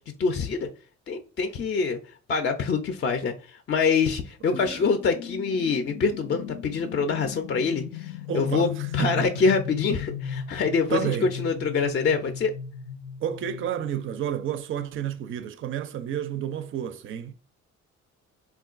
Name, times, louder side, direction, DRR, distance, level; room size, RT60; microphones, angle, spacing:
voice 1, 0.2-0.7 1.1-2.0 2.3-12.5, left 5 dB, 40° left, 0.4 m, -25 dB
voice 2, 4.4-4.9 8.3-9.3 10.9-11.3 13.2-17.3, right 10 dB, 45° right, 0.4 m, -31 dB
sound 1, 4.5-14.8, left 8 dB, 85° left, 0.6 m, -37 dB
3.7 x 2.2 x 2.4 m
cardioid pair, 90°, 30 cm